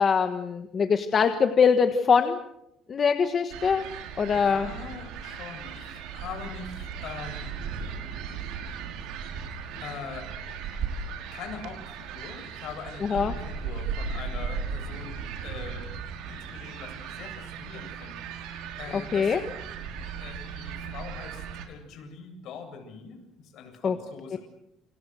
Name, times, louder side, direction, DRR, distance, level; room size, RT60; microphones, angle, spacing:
voice 1, 0.0-2.4 2.9-3.9 4.2-4.7 13.0-13.3 18.9-19.4 23.8-24.0 24.3-24.4, left 6 dB, 30° left, 7 dB, 1.5 m, -23 dB
sound 1, 3.5-21.7, right 6 dB, 80° right, 5.2 m, -37 dB
voice 2, 4.3-7.5 9.0-9.1 9.8-10.3 11.3-15.9 16.3-19.3 20.0-24.4, left 6 dB, 55° left, 5 dB, 8.0 m, -42 dB
29.0 x 28.0 x 6.4 m, 0.84 s
cardioid pair, 170°, 0 cm